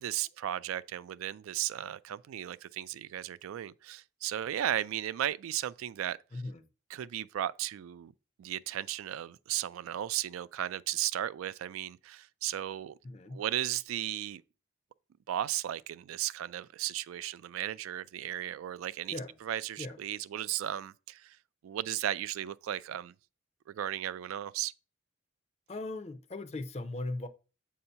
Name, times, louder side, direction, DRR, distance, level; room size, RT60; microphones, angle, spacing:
voice 1, 0.0-6.2 6.9-8.1 8.4-13.0 13.3-14.4 15.3-19.2 19.4-21.4 21.6-23.1 23.7-24.7, right 12 dB, 90° right, 0.3 m, -35 dB
voice 2, 6.3-6.6 13.0-13.4 19.1-19.3 19.8-20.0 25.7-27.3, left 2 dB, 30° left, 0.5 m, -38 dB
7.7 x 2.8 x 5.5 m
head